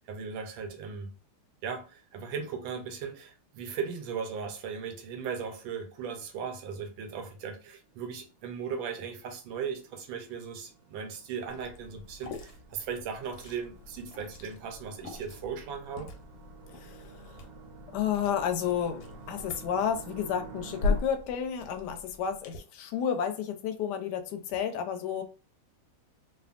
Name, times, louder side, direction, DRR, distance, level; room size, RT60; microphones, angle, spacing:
voice 1, 0.1-1.1 1.6-16.1, right 6 dB, 90° right, 1.5 m, -37 dB
sound 1, 7.9-21.0, right 5 dB, 75° right, 1.3 m, -51 dB
Liquid, 11.5-22.6, left 3 dB, 85° left, 1.5 m, -39 dB
voice 2, 16.7-17.4 17.9-25.2, left 8 dB, 70° left, 1.1 m, -31 dB
3.4 x 2.3 x 2.4 m
omnidirectional pair, 2.1 m